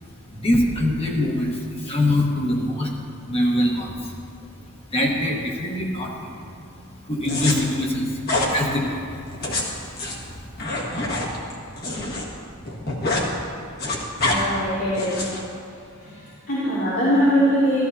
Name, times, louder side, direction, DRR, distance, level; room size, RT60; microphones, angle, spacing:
voice 1, 0.3-2.9 3.2-4.2 4.7-6.3 7.0-9.3 10.0-10.3, left 1 dB, 30° left, -1 dB, 1.4 m, -24 dB
sound 1, 7.2-7.5 8.2-8.5 9.3-12.2 12.5-13.3 13.6-14.4 14.9-15.4, left 2 dB, 50° left, 1.6 m, -26 dB
voice 2, 14.2-15.3 16.0-17.9, equal, 80° left, -12 dB, 3.2 m, -22 dB
14.0 x 13.0 x 2.8 m, 2.4 s
head